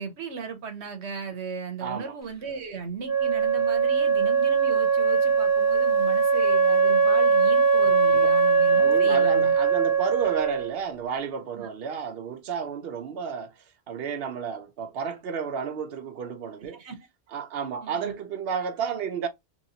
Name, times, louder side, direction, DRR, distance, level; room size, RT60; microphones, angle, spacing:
voice 1, 0.0-9.5 11.6-11.7 16.7-17.0 17.8-18.1, right 5 dB, 90° right, 1.2 m, -36 dB
voice 2, 1.8-2.1 8.1-8.3 8.7-13.5 13.9-16.8 17.3-19.3, right 6 dB, 65° right, 0.8 m, -32 dB
Wind instrument woodwind instrument, 3.0-10.8, right 5 dB, 25° right, 0.4 m, -21 dB
3.1 x 3.0 x 2.7 m
omnidirectional pair, 1.1 m